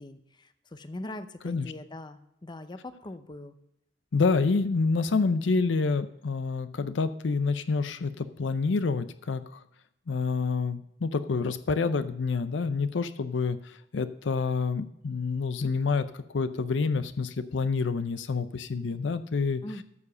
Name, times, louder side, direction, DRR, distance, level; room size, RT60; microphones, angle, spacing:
voice 1, 0.0-3.5 19.6-19.8, left 1 dB, 25° left, 10 dB, 0.6 m, -41 dB
voice 2, 4.1-9.6 10.1-19.6, left 4 dB, 70° left, 12 dB, 0.5 m, -28 dB
13.5 x 4.9 x 6.6 m, 0.79 s
head